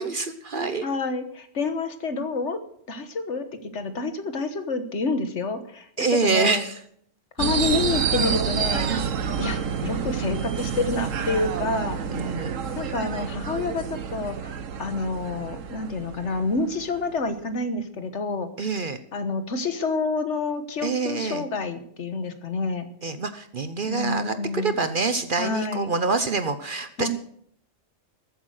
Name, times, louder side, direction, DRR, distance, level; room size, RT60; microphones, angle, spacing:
voice 1, 0.0-0.9 6.0-6.8 8.9-9.1 12.1-12.6 18.6-19.0 20.8-21.4 23.0-27.1, right 4 dB, 45° right, 10 dB, 0.9 m, -26 dB
voice 2, 0.8-2.6 2.9-6.6 7.4-8.9 9.4-12.0 12.8-14.5 14.8-18.7 19.1-22.9 23.9-24.7 25.4-25.9 27.0-27.1, left 3 dB, 60° left, 9 dB, 1.5 m, -28 dB
sound 1, 7.4-17.3, right 7 dB, 75° right, 1.4 m, -29 dB
14.0 x 8.6 x 6.5 m, 0.66 s
omnidirectional pair, 1.3 m